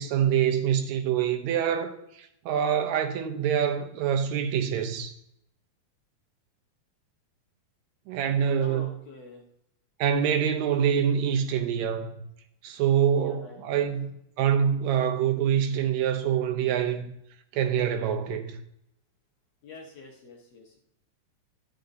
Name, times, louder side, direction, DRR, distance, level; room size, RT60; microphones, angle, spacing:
voice 1, 0.0-5.1 8.1-8.9 10.0-12.2 12.6-14.1 14.4-17.1 17.5-18.6, right 8 dB, 70° right, 1.8 m, -25 dB
voice 2, 8.6-9.5 13.2-14.1 19.6-20.8, left 3 dB, 55° left, 2.1 m, -47 dB
11.5 x 9.4 x 2.7 m
omnidirectional pair, 4.2 m